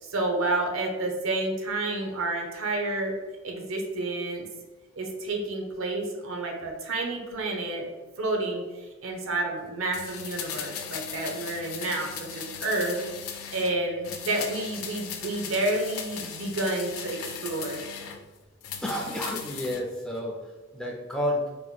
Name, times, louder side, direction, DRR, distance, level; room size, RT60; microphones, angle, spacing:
voice 1, 0.0-3.1 3.4-4.4 5.0-7.9 8.2-13.0 13.5-17.9, right 2 dB, 75° right, 2 dB, 0.6 m, -30 dB
sound 1, 9.9-13.8 14.0-18.2 18.6-19.8 20.1-20.2, left 7 dB, 85° left, 0.4 m, -38 dB
voice 2, 18.8-21.5, left 1 dB, 5° left, -1 dB, 0.4 m, -31 dB
2.9 x 2.2 x 3.9 m, 1.2 s
head